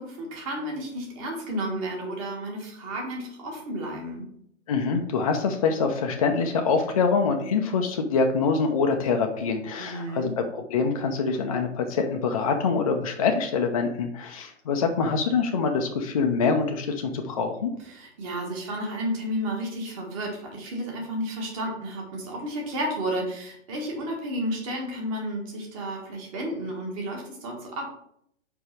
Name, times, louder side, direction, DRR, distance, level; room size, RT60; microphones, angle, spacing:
voice 1, 0.0-4.2 9.8-10.3 17.9-27.9, right 1 dB, 25° right, 0 dB, 1.5 m, -32 dB
voice 2, 4.7-17.7, left 5 dB, 30° left, 4 dB, 0.5 m, -25 dB
5.1 x 4.3 x 4.4 m, 0.70 s
figure-of-eight pair, 125°, 38 cm